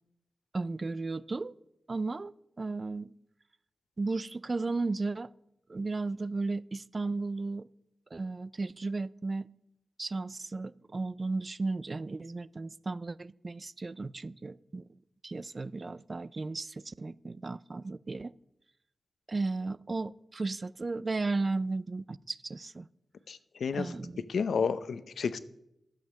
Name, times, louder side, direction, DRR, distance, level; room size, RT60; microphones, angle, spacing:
voice 1, 0.5-1.5 1.9-2.3 2.6-3.1 4.0-5.3 5.7-7.7 8.1-9.5 10.0-15.0 15.2-18.3 19.3-22.9 23.7-24.2, right 3 dB, 40° right, 20 dB, 0.3 m, -34 dB
voice 2, 23.3-23.9 24.3-25.4, left 5 dB, 80° left, 14 dB, 0.6 m, -31 dB
11.5 x 7.2 x 6.4 m, 0.83 s
wide cardioid pair, 80°, 0 cm